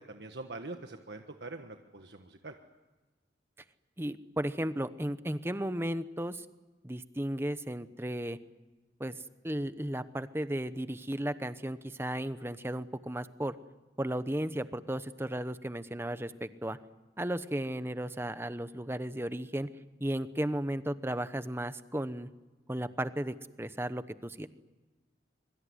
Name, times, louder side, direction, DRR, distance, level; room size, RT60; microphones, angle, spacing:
voice 1, 0.1-2.5, right 2 dB, 70° right, 5 dB, 1.4 m, -44 dB
voice 2, 4.0-6.4 6.8-8.4 9.0-9.2 9.4-13.6 14.0-16.8 17.2-19.7 20.0-22.3 22.7-24.5, right 1 dB, 15° right, 12 dB, 0.9 m, -34 dB
25.0 x 23.5 x 9.7 m, 1.2 s
head